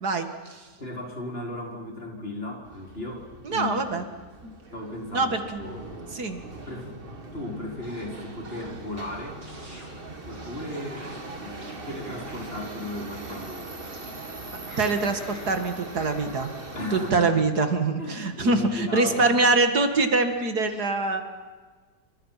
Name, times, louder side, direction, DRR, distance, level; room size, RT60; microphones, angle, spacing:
voice 1, 0.0-0.6 3.4-4.1 4.4-4.5 5.1-5.6 6.1-6.4 14.8-16.5 16.9-21.2, right 3 dB, 65° right, 7 dB, 2.5 m, -24 dB
voice 2, 0.8-4.1 4.7-5.9 6.7-6.9 7.3-9.5 10.2-11.1 11.4-13.8 16.7-17.3 18.0-19.4, left 1 dB, 35° left, 0 dB, 5.1 m, -36 dB
Subway metro underground, 2.6-17.1, right 2 dB, 35° right, 2.2 m, -41 dB
sound 1, 9.4-9.9 10.3-10.6 11.0-12.7 13.1-14.2 14.7-15.5 16.0-16.1, right 1 dB, 90° right, 8.6 m, -48 dB
29.5 x 27.0 x 5.8 m, 1.4 s
omnidirectional pair, 1.8 m